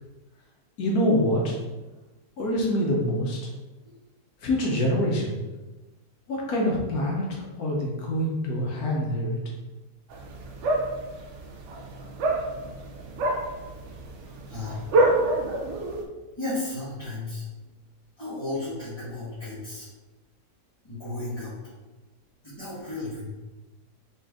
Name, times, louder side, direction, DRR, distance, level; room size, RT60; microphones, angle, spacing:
voice 1, 0.8-1.6 2.4-3.4 4.4-5.4 6.3-9.4, equal, 70° left, -2 dB, 1.2 m, -25 dB
sound 1, 10.1-16.0, right 2 dB, 65° right, 0.7 m, -27 dB
voice 2, 14.4-14.8 16.4-17.4 18.2-19.9 20.8-21.5 22.4-23.3, left 2 dB, 15° left, -13 dB, 1.4 m, -34 dB
4.1 x 3.2 x 3.5 m, 1.1 s
omnidirectional pair, 1.7 m